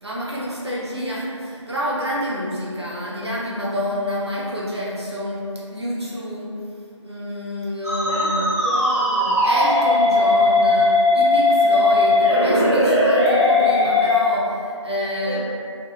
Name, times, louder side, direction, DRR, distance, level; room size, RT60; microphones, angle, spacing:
voice 1, 0.0-6.6 7.0-8.5 9.4-15.4, equal, 55° right, -6 dB, 0.6 m, -28 dB
Musical instrument, 7.8-14.2, left 2 dB, 30° left, 0.7 m, -18 dB
voice 2, 8.1-9.4 15.2-15.4, equal, 75° left, -10 dB, 1.0 m, -31 dB
2.6 x 2.1 x 2.6 m, 2.4 s
figure-of-eight pair, 170°, 16 cm